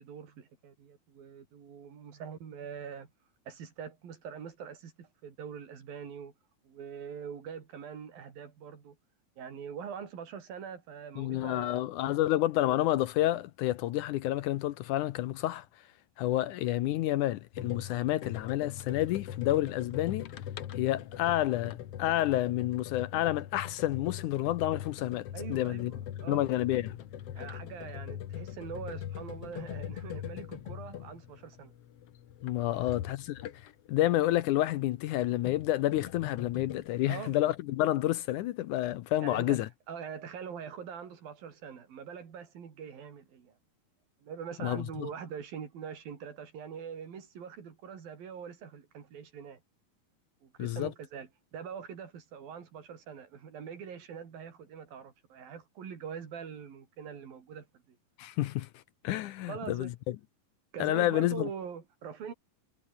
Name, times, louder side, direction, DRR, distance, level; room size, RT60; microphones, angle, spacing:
voice 1, 0.0-3.1 3.5-6.3 6.6-9.0 9.4-12.2 25.3-26.5 27.4-31.7 32.7-33.0 37.1-37.4 39.2-39.6 39.9-43.6 44.2-49.6 50.4-58.0 59.4-59.9 60.7-62.3, right 7 dB, 85° right, 5.2 m, -43 dB
voice 2, 11.2-15.7 16.2-20.3 20.7-25.9 26.3-27.0 32.4-39.7 44.6-45.1 50.6-50.9 58.2-58.7 59.0-60.2 60.8-61.5, left 14 dB, 75° left, 2.0 m, -29 dB
sound 1, 17.5-33.9 35.0-36.9, left 10 dB, 55° left, 1.9 m, -42 dB
omnidirectional pair, 4.0 m